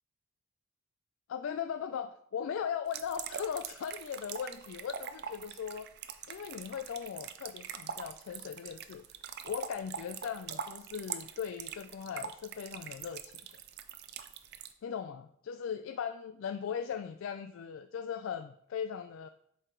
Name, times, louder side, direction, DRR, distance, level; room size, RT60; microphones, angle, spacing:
voice 1, 1.3-5.9 6.3-9.0 9.4-13.4 14.8-19.3, left 7 dB, 65° left, 9 dB, 0.3 m, -38 dB
sound 1, 2.9-14.7, right 8 dB, 50° right, 0.5 m, -43 dB
7.8 x 4.6 x 3.8 m, 0.69 s
head